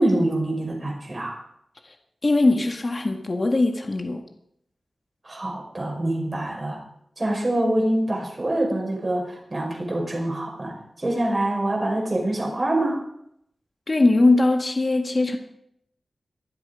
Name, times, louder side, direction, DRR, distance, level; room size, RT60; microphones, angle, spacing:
voice 1, 0.0-1.4 5.2-6.8 7.2-13.0, right 1 dB, 35° right, 0 dB, 5.3 m, -25 dB
voice 2, 2.2-4.2 13.9-15.4, left 2 dB, 40° left, 4 dB, 1.7 m, -20 dB
23.5 x 7.9 x 5.1 m, 0.74 s
wide cardioid pair, 90°, 0 cm